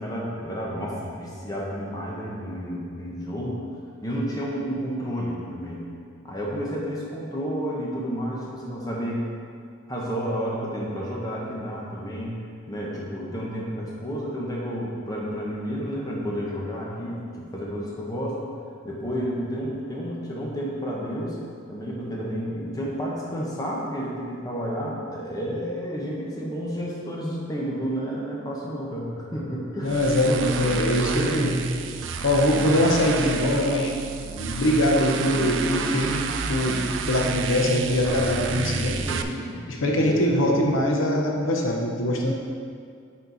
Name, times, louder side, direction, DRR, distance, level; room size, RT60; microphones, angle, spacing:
voice 1, 0.0-3.6 4.0-5.9 6.2-9.2 9.9-12.3 12.7-18.5 18.8-21.4 21.7-30.3 30.6-31.5 32.1-32.2 32.5-32.7 33.0-33.1 39.0-40.6, equal, 20° left, -4 dB, 1.1 m, -31 dB
voice 2, 29.8-31.6 32.2-34.0 34.3-36.2 36.5-36.8 37.1-39.1 39.7-42.3, left 1 dB, 80° left, 0 dB, 0.9 m, -22 dB
sound 1, 29.9-39.2, right 5 dB, 70° right, 0.4 m, -30 dB
9.3 x 4.4 x 4.1 m, 2.3 s
head